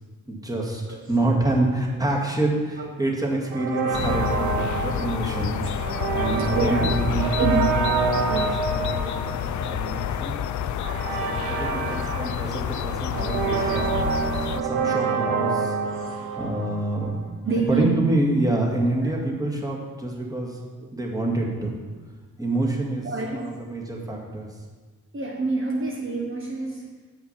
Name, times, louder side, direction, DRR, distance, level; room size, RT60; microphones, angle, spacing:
voice 1, 0.3-5.9 6.1-7.6 8.1-10.4 11.2-13.9 14.6-15.8 16.4-17.1 17.7-20.6 20.9-21.7 22.4-23.1 23.3-24.5, right 2 dB, 10° right, -1 dB, 2.0 m, -27 dB
sound 1, 3.5-17.3, right 5 dB, 90° right, 0.7 m, -28 dB
voice 2, 3.7-4.6 6.5-6.9 7.4-7.5 8.3-8.6 15.8-16.5 17.4-17.8 19.0-19.2 23.0-23.5 25.1-26.9, right 4 dB, 35° right, -1 dB, 1.3 m, -28 dB
sound 2, 3.9-14.6, left 10 dB, 55° left, 0.5 m, -28 dB
7.5 x 5.7 x 5.7 m, 1.4 s
hypercardioid pair, 45°, 36 cm